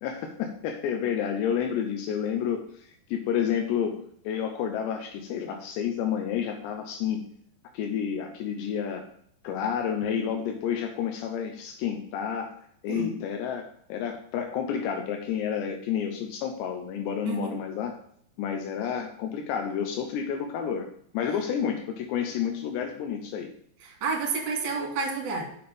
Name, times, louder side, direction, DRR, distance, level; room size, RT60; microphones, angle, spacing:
voice 1, 0.0-7.2 7.7-9.1 9.4-12.6 12.8-17.9 18.4-20.9 21.1-23.5, left 8 dB, 85° left, 4 dB, 3.0 m, -30 dB
voice 2, 17.2-17.6 24.0-25.4, right 4 dB, 40° right, 0 dB, 2.1 m, -29 dB
7.2 x 7.0 x 5.2 m, 0.65 s
omnidirectional pair, 5.0 m